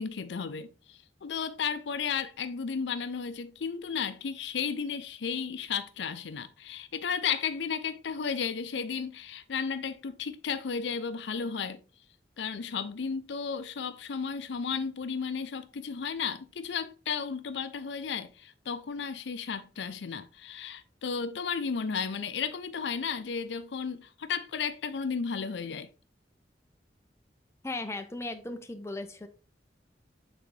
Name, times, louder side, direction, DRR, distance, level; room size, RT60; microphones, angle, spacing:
voice 1, 0.0-11.8 12.4-25.9, left 6 dB, 75° left, 0.5 m, -34 dB
voice 2, 27.6-29.3, left 2 dB, 15° left, 0.6 m, -37 dB
8.3 x 3.8 x 3.2 m
head